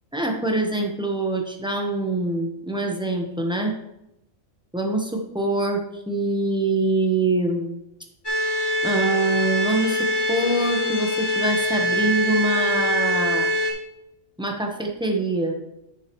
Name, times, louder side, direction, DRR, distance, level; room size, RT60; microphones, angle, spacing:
voice 1, 0.1-3.8 4.7-7.8 8.8-13.5 14.4-15.6, right 2 dB, 5° right, 2 dB, 1.0 m, -24 dB
sound 1, 8.2-13.7, equal, 15° left, 1.7 m, -23 dB
10.0 x 6.7 x 3.1 m, 0.85 s
omnidirectional pair, 1.5 m